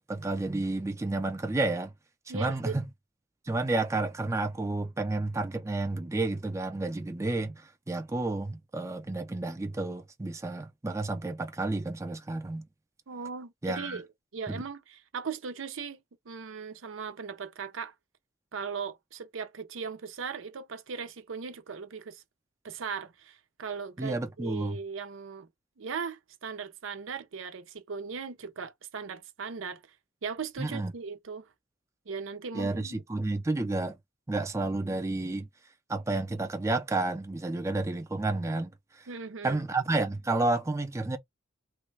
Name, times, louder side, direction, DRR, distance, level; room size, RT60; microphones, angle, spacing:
voice 1, 0.1-1.9 2.3-2.9 3.5-12.6 13.6-14.0 14.5-14.6 24.0-24.8 30.6-30.9 32.5-34.0 34.3-35.5 35.9-39.1 39.4-41.2, right 2 dB, 15° right, 0.4 m, -31 dB
voice 2, 2.3-2.8 13.1-14.1 14.3-16.0 16.3-17.9 18.5-22.2 22.6-25.5 25.8-29.8 30.2-31.5 32.1-33.0 39.1-39.6, right 5 dB, 80° right, 0.6 m, -38 dB
3.2 x 2.2 x 3.2 m
head